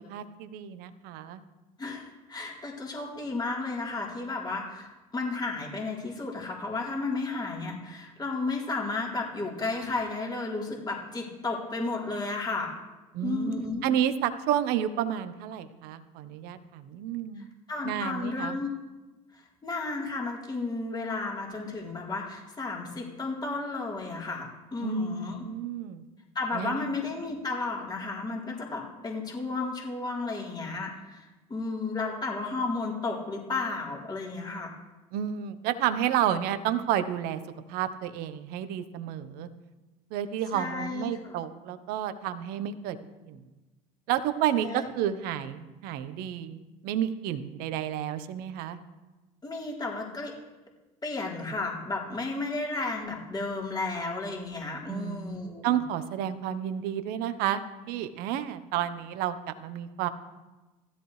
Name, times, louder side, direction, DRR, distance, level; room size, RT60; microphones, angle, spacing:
voice 1, 0.1-1.4 13.1-13.5 13.8-17.5 17.8-18.6 24.8-26.0 26.5-26.9 35.1-37.4 37.7-39.5 40.1-43.0 43.3-43.4 44.1-48.8 54.9-60.1, right 10 dB, 60° right, 11 dB, 1.1 m, -31 dB
voice 2, 1.8-12.7 13.2-13.8 17.7-18.7 19.3-25.4 26.3-34.7 40.5-41.3 44.6-44.9 49.4-50.4 51.0-55.8, left 3 dB, 25° left, -3 dB, 3.8 m, -33 dB
16.5 x 13.5 x 3.3 m, 1.1 s
hypercardioid pair, 70°, 18 cm